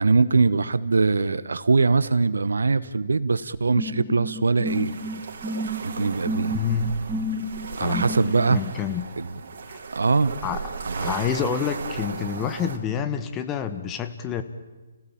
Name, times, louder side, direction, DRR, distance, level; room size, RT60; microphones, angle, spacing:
voice 1, 0.0-4.9 5.8-6.5 7.7-8.6 9.2-9.3 9.9-10.4 10.9-11.1, right 4 dB, 80° right, 15 dB, 1.1 m, -22 dB
sound 1, 3.7-8.5, equal, 10° right, 3.7 m, -31 dB
sound 2, 4.6-12.8, right 5 dB, 60° right, 4.0 m, -36 dB
voice 2, 6.5-6.9 7.8-8.1 8.5-9.1 9.7-9.8 10.4-14.4, left 7 dB, 20° left, 9 dB, 1.5 m, -28 dB
30.0 x 17.0 x 8.9 m, 1.2 s
hypercardioid pair, 145°, 0 cm